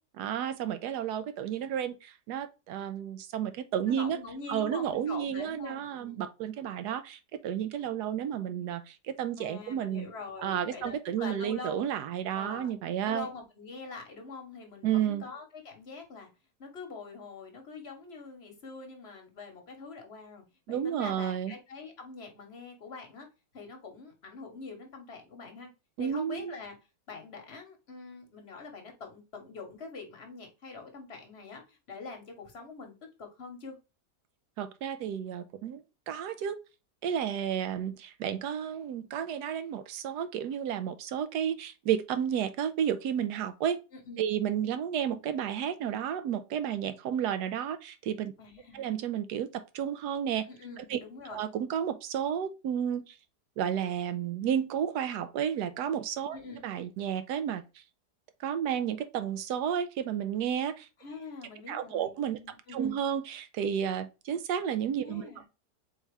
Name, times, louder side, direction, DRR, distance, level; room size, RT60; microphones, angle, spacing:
voice 1, 0.2-4.2 4.5-10.1 10.4-13.3 14.8-15.2 20.7-21.5 26.0-26.5 34.6-35.8 36.1-36.6 37.0-43.8 44.2-48.3 48.7-50.4 50.9-51.0 51.3-53.0 53.6-56.4 56.6-57.6 58.4-60.9 61.7-62.4 62.7-65.5, right 9 dB, 85° right, 1.2 m, -32 dB
voice 2, 3.9-6.2 9.4-11.9 12.3-16.3 16.6-23.3 23.5-25.7 26.0-26.8 27.1-33.8 43.9-44.3 48.4-48.9 50.5-51.4 56.3-56.7 61.0-62.1 62.4-63.0 65.0-65.4, left 4 dB, 45° left, 1.2 m, -44 dB
4.1 x 3.7 x 3.3 m
omnidirectional pair, 1.7 m